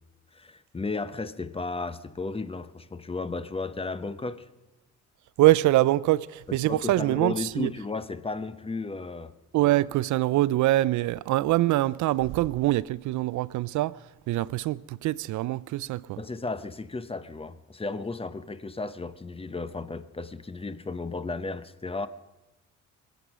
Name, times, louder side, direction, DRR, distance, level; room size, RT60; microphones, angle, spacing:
voice 1, 0.3-4.5 6.5-9.3 16.2-22.1, left 3 dB, 20° left, 0.8 m, -34 dB
voice 2, 5.4-7.7 9.5-14.0 14.3-16.2, right 16 dB, 75° right, 0.5 m, -24 dB
24.0 x 8.2 x 6.2 m
cardioid pair, 90°, 30 cm